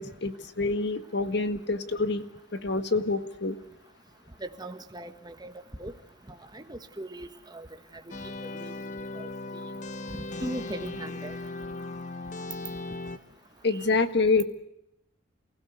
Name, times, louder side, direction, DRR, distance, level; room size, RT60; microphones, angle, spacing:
voice 1, 0.0-2.2 2.5-3.6 13.6-14.4, left 3 dB, 55° left, 10 dB, 1.8 m, -27 dB
voice 2, 4.4-5.5 5.8-5.9 6.5-7.7 8.6-8.8 9.1-9.3 10.4-11.4, right 1 dB, 20° right, 8 dB, 1.5 m, -38 dB
sound 1, 8.1-13.2, left 2 dB, 35° left, 1.2 m, -37 dB
29.0 x 16.5 x 8.1 m, 0.80 s
head